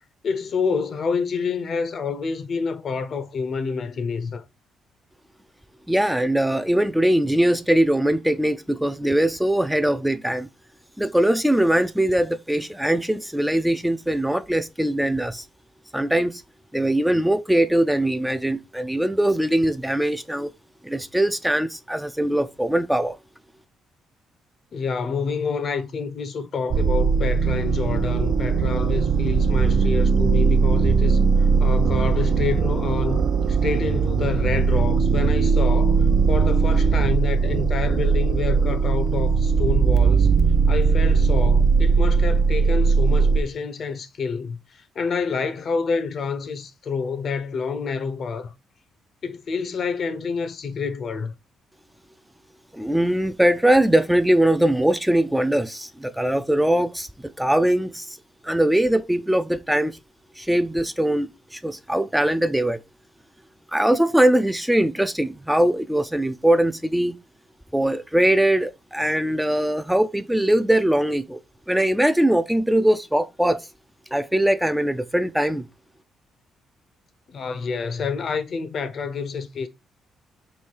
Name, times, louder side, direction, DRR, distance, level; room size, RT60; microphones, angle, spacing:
voice 1, 0.2-4.4 24.7-40.3 40.7-48.5 49.2-51.3 77.3-79.7, left 5 dB, 55° left, 0.6 m, -28 dB
voice 2, 5.9-10.5 11.0-15.5 15.9-16.4 16.7-20.5 20.8-23.2 52.7-58.2 58.4-60.0 60.4-62.8 63.7-67.2 67.7-71.4 71.7-73.7 74.1-75.6, right 1 dB, 5° right, 0.3 m, -21 dB
sound 1, 26.7-43.4, right 5 dB, 60° right, 0.5 m, -19 dB
3.1 x 3.1 x 4.5 m
cardioid pair, 90°, 0 cm